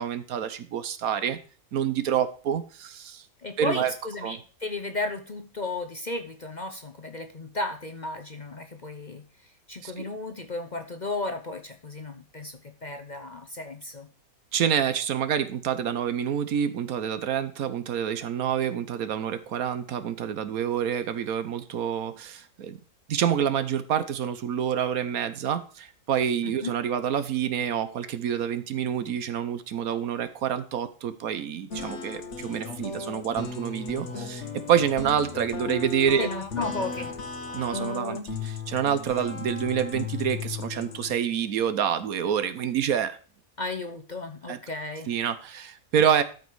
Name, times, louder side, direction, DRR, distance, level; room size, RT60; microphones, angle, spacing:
voice 1, 0.0-1.4 1.7-3.3 3.6-3.9 4.2-4.4 9.8-10.1 14.5-22.8 23.1-36.3 37.5-43.2 44.5-44.6 45.1-46.2, right 8 dB, 70° right, 12 dB, 1.3 m, -27 dB
voice 2, 3.4-14.1 26.4-26.7 36.2-37.1 43.6-45.1, left 2 dB, 35° left, 6 dB, 0.8 m, -34 dB
sound 1, 31.7-41.1, left 4 dB, 55° left, 1.3 m, -35 dB
12.5 x 5.2 x 4.7 m, 0.39 s
omnidirectional pair, 1.6 m